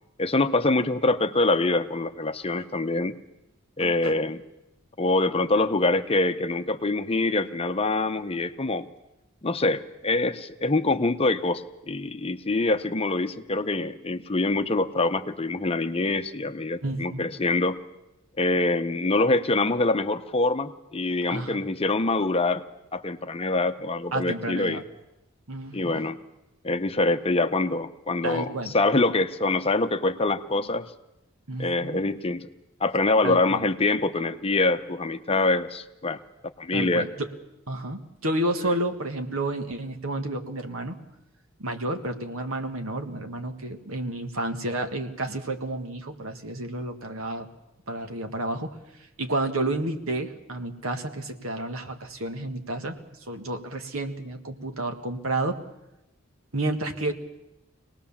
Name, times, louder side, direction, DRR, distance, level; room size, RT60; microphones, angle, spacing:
voice 1, 0.2-3.1 3.8-4.4 5.0-8.9 9.4-17.8 18.4-22.6 22.9-24.8 25.7-26.2 26.6-30.9 31.6-32.5 32.8-36.2 36.6-37.1, left 2 dB, 30° left, 9 dB, 0.7 m, -25 dB
voice 2, 3.8-4.2 16.8-17.3 21.3-21.6 24.1-24.8 25.5-26.1 28.2-28.8 31.5-32.0 33.2-33.6 36.7-37.3 37.7-41.0 41.6-47.5 47.9-48.8 49.2-53.0 53.3-55.6 56.5-57.1, right 1 dB, 85° right, 6 dB, 1.8 m, -30 dB
24.5 x 19.0 x 7.2 m, 0.90 s
head